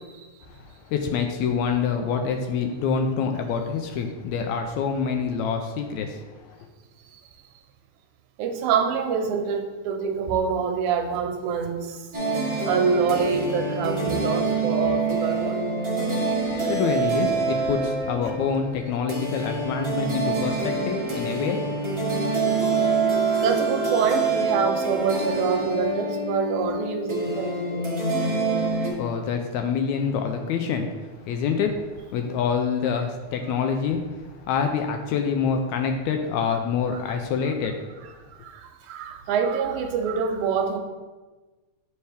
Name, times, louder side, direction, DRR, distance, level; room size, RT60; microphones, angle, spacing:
voice 1, 0.4-6.6 16.5-21.9 28.6-30.9 31.3-37.8, left 6 dB, 80° left, 5 dB, 1.8 m, -26 dB
voice 2, 8.4-12.0 12.7-15.6 23.4-27.9 36.9-37.0 38.4-40.8, right 6 dB, 85° right, 6 dB, 2.1 m, -26 dB
sound 1, 12.1-28.9, right 3 dB, 35° right, 0.4 m, -26 dB
8.3 x 4.6 x 3.4 m, 1.3 s
omnidirectional pair, 3.4 m